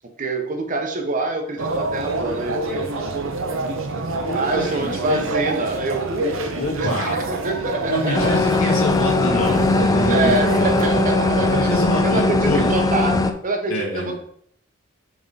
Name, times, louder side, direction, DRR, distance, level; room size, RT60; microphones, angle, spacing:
voice 1, 0.2-2.8 4.3-6.4 6.8-8.7 10.1-14.2, right 2 dB, 40° right, 4 dB, 0.9 m, -26 dB
sound 1, 1.6-11.8, right 2 dB, 65° right, 0.8 m, -27 dB
voice 2, 4.2-5.3 6.5-7.2 7.9-11.0 11.5-12.8 13.7-14.1, left 1 dB, 80° left, -2 dB, 2.1 m, -26 dB
Phantom Quadcopter steady flight, 8.1-13.3, left 2 dB, 15° left, 0.4 m, -19 dB
7.0 x 3.8 x 4.0 m, 0.65 s
head